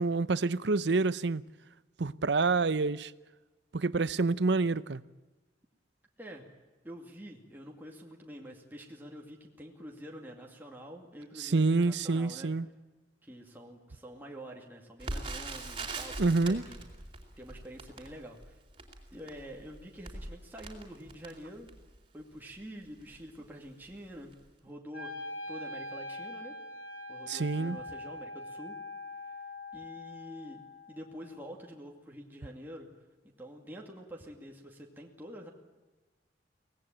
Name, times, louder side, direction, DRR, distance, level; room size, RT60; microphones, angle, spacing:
voice 1, 0.0-1.4 2.0-3.1 3.7-5.0 11.4-12.7 16.2-16.6 27.3-27.8, right 3 dB, 65° right, 0.7 m, -27 dB
voice 2, 6.8-12.5 13.2-16.8 17.4-18.6 19.1-21.7 22.1-24.3 24.6-26.5 27.1-28.8 29.7-30.6 30.9-32.9 33.4-35.5, equal, 10° right, 2.4 m, -47 dB
Crackle, 15.0-22.0 22.6-22.7 23.0-23.2 23.8-24.1 24.3-24.4, right 2 dB, 30° right, 3.8 m, -42 dB
Wind instrument woodwind instrument, 24.9-31.0, left 2 dB, 55° left, 4.2 m, -43 dB
24.5 x 18.5 x 8.9 m
head